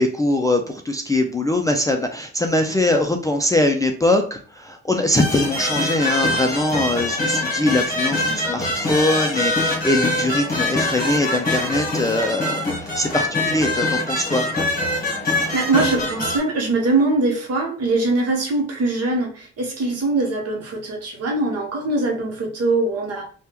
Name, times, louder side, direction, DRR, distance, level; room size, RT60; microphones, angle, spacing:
voice 1, 0.0-12.6 13.0-14.4, left 1 dB, 10° left, 3 dB, 0.3 m, -22 dB
sound 1, 5.1-16.4, left 2 dB, 30° left, 1.1 m, -24 dB
voice 2, 15.5-23.3, right 2 dB, 55° right, 0 dB, 1.0 m, -22 dB
3.3 x 2.3 x 2.9 m, 0.43 s
cardioid pair, 90°, 30 cm